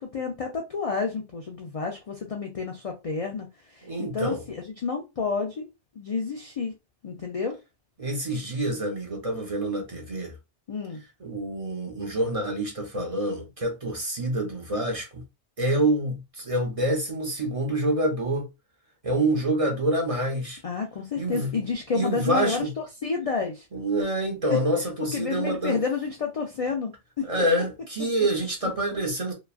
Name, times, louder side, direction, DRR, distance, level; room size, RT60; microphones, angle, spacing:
voice 1, 0.0-5.6 6.0-6.7 7.0-7.5 10.7-11.0 20.6-23.7 24.5-24.6 25.1-27.3, left 5 dB, 65° left, 0.3 m, -30 dB
voice 2, 3.8-4.4 8.0-10.3 11.2-15.2 15.6-18.5 19.0-20.6 21.2-21.5 21.9-22.7 23.7-25.8 27.2-29.3, right 1 dB, 35° right, 0.7 m, -27 dB
3.0 x 2.3 x 2.3 m
omnidirectional pair, 1.2 m